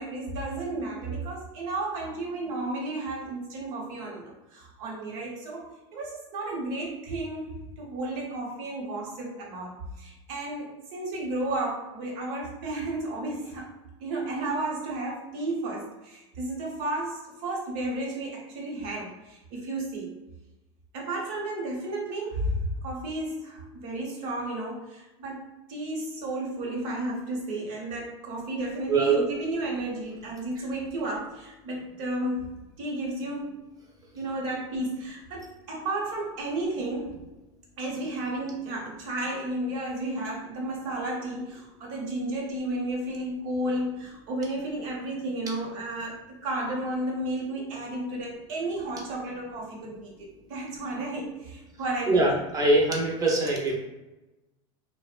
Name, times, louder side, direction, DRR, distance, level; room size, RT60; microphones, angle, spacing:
voice 1, 0.0-5.6 5.9-13.7 14.0-20.1 20.9-32.5 32.8-33.5 34.1-37.2 37.8-52.3, right 1 dB, 60° right, -2 dB, 0.9 m, -33 dB
voice 2, 28.9-29.2 52.1-53.7, right 2 dB, 25° right, -1 dB, 0.5 m, -22 dB
2.7 x 2.0 x 2.4 m, 1.0 s
supercardioid pair, 120°, 15 cm